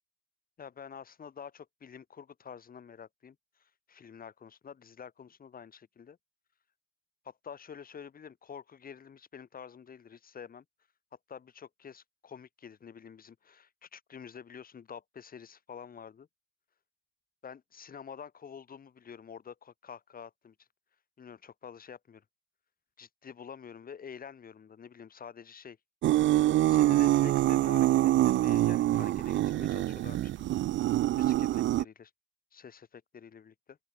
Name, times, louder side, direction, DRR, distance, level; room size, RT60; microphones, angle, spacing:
voice 1, 0.6-6.2 7.2-10.6 11.3-16.3 17.4-20.7 21.2-22.2 23.0-25.8 26.7-30.5 31.1-32.1 32.5-33.8, left 7 dB, 50° left, 2.7 m, -48 dB
sound 1, 26.0-31.8, right 14 dB, 80° right, 0.4 m, -25 dB
open air
cardioid pair, 120°, 19 cm